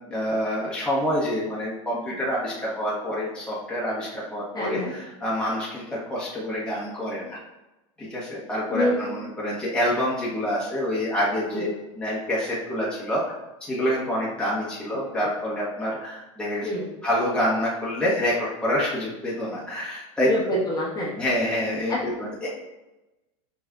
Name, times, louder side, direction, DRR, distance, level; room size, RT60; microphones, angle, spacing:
voice 1, 0.1-7.4 8.0-11.7 12.0-13.3 13.7-16.7 17.0-20.3 21.2-22.5, equal, 5° left, -8 dB, 1.3 m, -27 dB
voice 2, 4.5-4.9 8.7-9.0 11.5-11.7 16.6-16.9 20.2-21.1 21.9-22.0, left 1 dB, 25° left, -5 dB, 1.4 m, -25 dB
6.1 x 3.4 x 2.4 m, 0.99 s
supercardioid pair, 115°, 17 cm